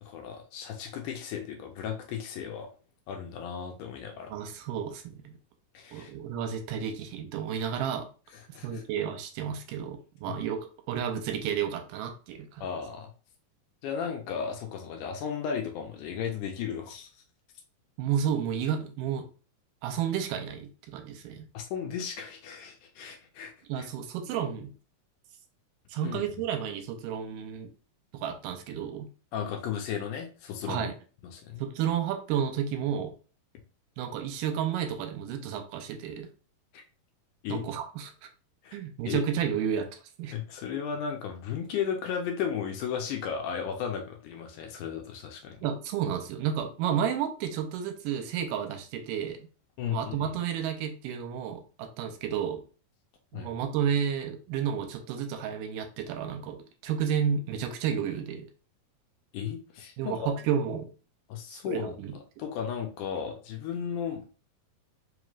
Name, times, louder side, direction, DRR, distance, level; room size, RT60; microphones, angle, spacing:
voice 1, 0.0-2.7 3.1-4.4 5.7-6.1 8.3-8.8 10.3-10.4 12.6-13.1 13.8-17.1 21.5-23.9 26.0-26.2 29.3-30.9 31.2-31.6 36.7-36.8 37.4-37.6 38.6-38.8 39.1-39.3 40.3-45.6 49.8-50.3 53.3-53.5 59.3-60.3 61.3-62.0 62.4-64.4, left 7 dB, 80° left, 3 dB, 2.0 m, -35 dB
voice 2, 4.3-5.3 5.9-8.1 8.6-10.6 10.9-12.7 18.0-19.3 19.8-21.5 23.7-24.7 25.9-27.7 28.1-29.1 30.7-31.0 31.6-33.1 34.0-36.3 37.5-38.1 38.7-40.3 45.6-49.5 49.9-52.6 53.3-58.5 60.0-60.9 61.5-62.2, right 8 dB, 80° right, 5 dB, 2.2 m, -31 dB
5.1 x 3.0 x 2.4 m, 0.36 s
omnidirectional pair, 3.9 m